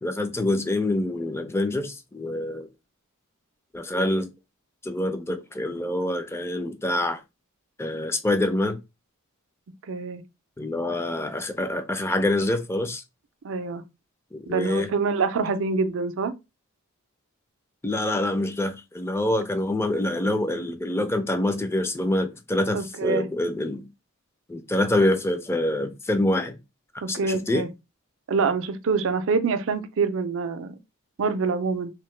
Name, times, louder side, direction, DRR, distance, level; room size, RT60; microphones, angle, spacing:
voice 1, 0.0-2.7 3.7-4.3 4.8-7.2 7.8-8.8 10.6-13.0 14.3-14.9 17.8-23.9 24.5-26.6 27.1-27.6, left 1 dB, 10° left, 0.4 m, -26 dB
voice 2, 9.9-10.2 13.4-13.8 14.5-16.3 22.7-23.3 27.0-27.7 28.3-30.7 31.2-31.9, right 4 dB, 65° right, 0.4 m, -25 dB
2.9 x 2.1 x 3.2 m
head